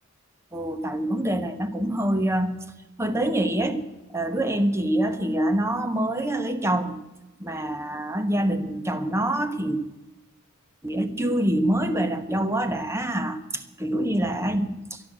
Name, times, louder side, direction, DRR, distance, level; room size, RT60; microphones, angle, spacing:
voice 1, 0.5-2.5 3.0-3.8 4.1-7.0 7.4-9.8 10.8-15.0, right 1 dB, 15° right, 8 dB, 1.0 m, -25 dB
12.0 x 11.5 x 7.6 m, 1.0 s
head